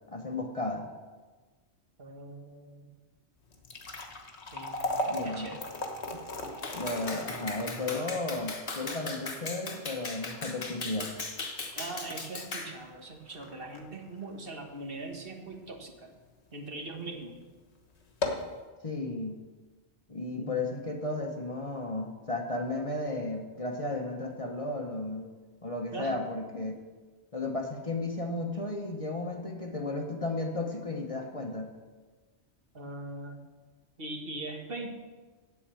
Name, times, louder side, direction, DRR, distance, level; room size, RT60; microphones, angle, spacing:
voice 1, 0.1-0.9 5.1-5.5 6.1-6.2 6.7-11.2 18.8-19.4 20.1-25.3 25.6-26.8 27.3-31.7, left 2 dB, 30° left, 2 dB, 1.0 m, -34 dB
voice 2, 2.0-2.9 4.5-4.8 5.2-5.7 11.7-16.1 16.5-17.4 20.3-20.8 25.9-26.2 32.7-33.4 34.0-34.9, right 2 dB, 55° right, 3 dB, 1.5 m, -41 dB
sound 1, 3.4-15.7 16.2-16.3 17.0-17.1 17.5-17.6 18.0-18.6, left 1 dB, 70° left, 1.5 m, -38 dB
Clapping, 6.6-12.7, left 3 dB, 55° left, 1.5 m, -38 dB
8.5 x 8.2 x 7.5 m, 1.3 s
omnidirectional pair, 1.2 m